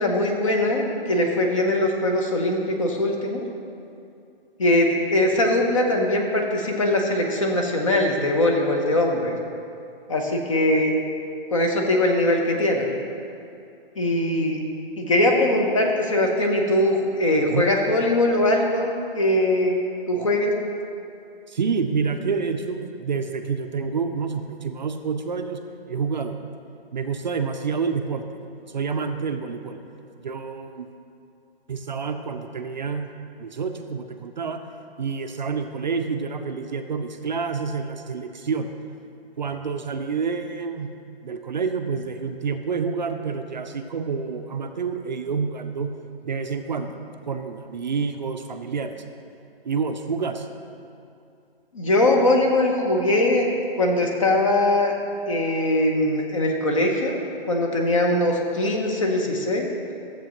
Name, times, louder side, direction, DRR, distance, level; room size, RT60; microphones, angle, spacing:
voice 1, 0.0-3.4 4.6-9.4 10.1-10.9 11.5-12.9 14.0-14.6 15.0-19.8 20.1-20.5 51.7-53.5 53.8-54.9 55.3-57.2 57.5-59.7, left 1 dB, 35° left, 2 dB, 0.8 m, -21 dB
voice 2, 21.5-25.6 25.9-26.4 26.9-28.3 28.7-29.8 30.2-30.9 31.7-33.1 33.4-34.6 35.0-38.7 39.4-40.9 41.2-45.9 46.2-47.0 47.3-49.0 49.7-50.5, right 5 dB, 50° right, 6 dB, 0.5 m, -28 dB
13.0 x 7.4 x 3.0 m, 2.6 s
hypercardioid pair, 170°, 30 cm